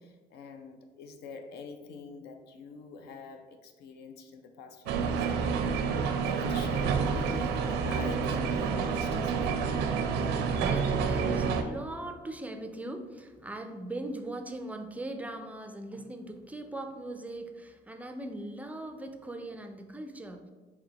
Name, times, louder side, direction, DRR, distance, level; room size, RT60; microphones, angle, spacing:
voice 1, 0.0-9.6, left 5 dB, 75° left, 7 dB, 0.6 m, -46 dB
sound 1, 4.9-11.6, right 5 dB, 90° right, 0.5 m, -28 dB
voice 2, 10.5-20.5, right 1 dB, 10° right, 6 dB, 0.4 m, -40 dB
4.3 x 2.8 x 4.0 m, 1.3 s
cardioid pair, 110°, 17 cm